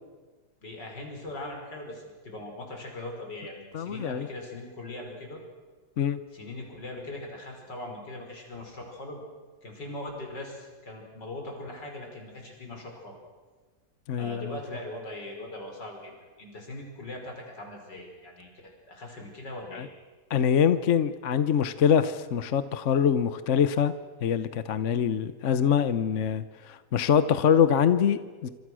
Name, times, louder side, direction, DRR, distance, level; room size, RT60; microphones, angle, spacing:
voice 1, 0.6-5.4 6.3-9.2 9.6-13.2 14.2-16.1 16.4-18.5 18.9-19.9, left 1 dB, 80° left, 2 dB, 6.0 m, -40 dB
voice 2, 3.7-4.3 6.0-6.2 14.1-14.6 19.7-19.9 20.3-23.9 24.2-28.5, left 8 dB, 50° left, 12 dB, 1.1 m, -24 dB
28.0 x 25.5 x 6.3 m, 1.4 s
omnidirectional pair, 1.9 m